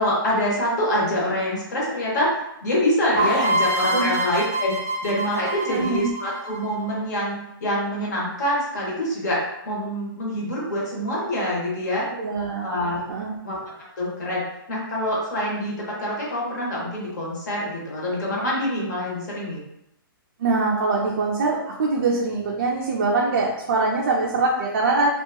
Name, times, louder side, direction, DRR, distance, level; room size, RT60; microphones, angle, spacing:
voice 1, 0.0-12.1 12.6-13.2 13.4-14.4 14.7-19.6, equal, 50° left, -4 dB, 0.9 m, -25 dB
sound 1, 3.2-6.9, right 1 dB, 20° left, 0.4 m, -25 dB
voice 2, 5.7-6.1 12.2-12.7 13.1-13.4 20.4-25.2, right 3 dB, 40° right, -4 dB, 0.3 m, -23 dB
2.7 x 2.2 x 2.2 m, 0.83 s
hypercardioid pair, 175°, 12 cm